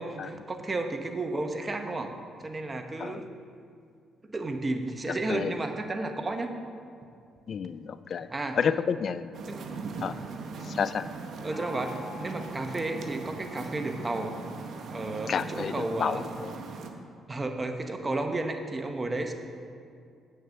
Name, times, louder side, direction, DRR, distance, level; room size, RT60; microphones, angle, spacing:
voice 1, 0.0-2.1 2.4-3.3 4.3-6.5 8.3-8.6 9.5-9.7 11.4-14.4 14.9-16.3 17.3-19.3, right 2 dB, 25° right, 5 dB, 0.9 m, -32 dB
voice 2, 7.5-8.3 8.6-9.3 10.0-10.2 10.7-11.0 15.3-16.5, left 7 dB, 55° left, 14 dB, 0.3 m, -30 dB
sound 1, 9.3-16.9, right 4 dB, 65° right, 0.9 m, -40 dB
Gong, 11.5-15.0, left 4 dB, 10° left, 2.6 m, -48 dB
8.0 x 6.6 x 6.4 m, 2.3 s
cardioid pair, 90°, 0 cm